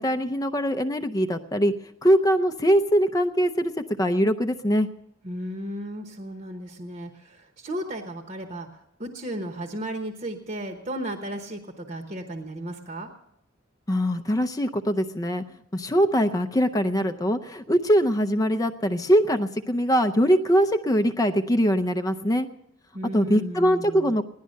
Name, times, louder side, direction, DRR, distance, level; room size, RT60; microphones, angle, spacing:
voice 1, 0.0-1.7 2.0-4.9 13.9-15.4 15.7-22.5 23.1-24.3, equal, 15° left, 8 dB, 0.5 m, -22 dB
voice 2, 5.2-13.1 22.9-24.1, right 1 dB, 35° right, 5 dB, 1.1 m, -35 dB
16.5 x 11.5 x 6.5 m, 0.78 s
head